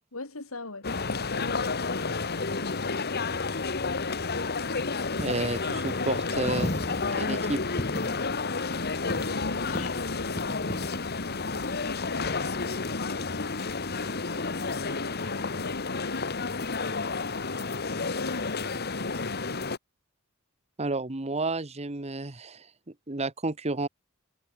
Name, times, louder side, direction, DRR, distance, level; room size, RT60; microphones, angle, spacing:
voice 1, 0.1-3.0 8.6-13.4 14.8-16.3 17.4-19.7, left 2 dB, 80° left, 3.5 m, -42 dB
sound 1, 0.8-19.8, left 4 dB, 50° left, 1.6 m, -31 dB
Coin (dropping), 3.8-12.4, left 1 dB, 30° left, 2.7 m, -39 dB
voice 2, 5.2-6.8 7.2-7.8 20.8-22.7 23.1-23.9, right 2 dB, 30° right, 1.2 m, -31 dB
head